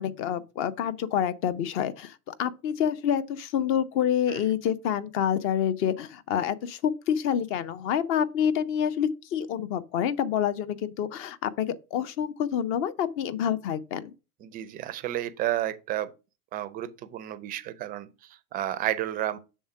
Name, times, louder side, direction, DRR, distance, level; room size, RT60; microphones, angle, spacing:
voice 1, 0.0-14.1, left 9 dB, 30° left, 0.5 m, -27 dB
voice 2, 14.4-16.1 16.5-19.4, right 13 dB, 20° right, 0.4 m, -31 dB
7.1 x 3.6 x 4.6 m
figure-of-eight pair, 80°, 45 cm